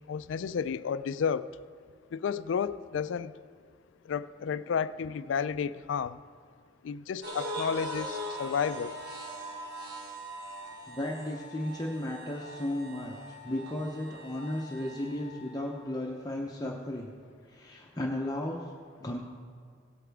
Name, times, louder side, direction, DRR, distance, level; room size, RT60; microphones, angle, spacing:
voice 1, 0.1-1.5 2.1-3.4 4.1-6.2 6.8-8.9, left 6 dB, 70° left, 15 dB, 0.3 m, -32 dB
sound 1, 7.2-15.6, equal, 60° right, 1.8 m, -41 dB
voice 2, 10.9-17.1 17.5-18.6 19.0-19.2, left 1 dB, 20° left, -1 dB, 0.7 m, -35 dB
17.5 x 8.5 x 3.5 m, 2.1 s
head